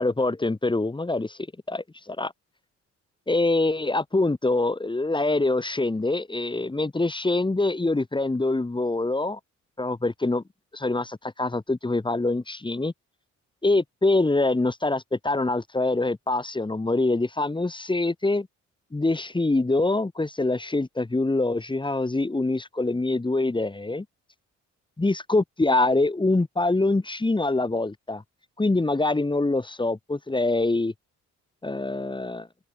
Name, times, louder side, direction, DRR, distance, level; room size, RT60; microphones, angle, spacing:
voice 1, 0.0-1.4 1.7-2.3 3.3-9.4 9.8-10.4 10.7-12.9 13.6-18.5 18.9-24.1 25.0-28.2 28.6-30.9 31.6-32.5, left 2 dB, 15° left, 2.5 m, -24 dB
cardioid pair, 90°, 30 cm